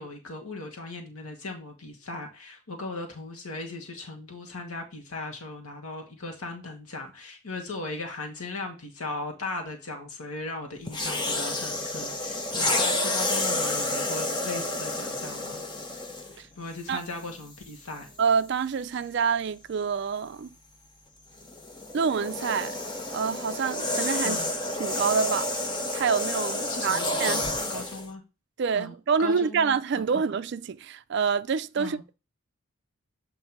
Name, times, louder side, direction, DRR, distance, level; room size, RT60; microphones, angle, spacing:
voice 1, 0.0-15.6 16.3-18.1 24.2-24.5 26.6-28.2 28.7-28.9 29.2-30.0 31.8-32.0, left 3 dB, 80° left, 1.2 m, -38 dB
sound 1, 10.9-16.4 17.2-17.4 21.4-28.1, left 1 dB, 20° left, 0.7 m, -30 dB
voice 2, 18.2-20.5 21.9-22.7 23.1-24.4 24.8-25.5 25.9-27.8 28.6-32.1, right 6 dB, 50° right, 0.3 m, -27 dB
7.9 x 2.6 x 5.7 m
head